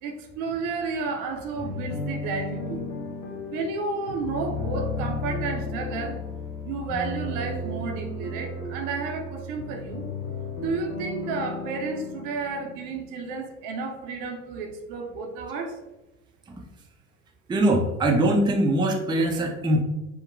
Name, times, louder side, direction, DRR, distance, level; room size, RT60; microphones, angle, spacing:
voice 1, 0.0-3.0 3.5-6.2 6.6-10.0 10.6-15.8, right 4 dB, 65° right, 3 dB, 0.5 m, -32 dB
sound 1, 1.6-13.3, left 3 dB, 65° left, 0.6 m, -34 dB
voice 2, 17.5-19.8, right 1 dB, 15° right, 2 dB, 0.4 m, -22 dB
2.8 x 2.1 x 2.5 m, 0.99 s
hypercardioid pair, 60°, 35 cm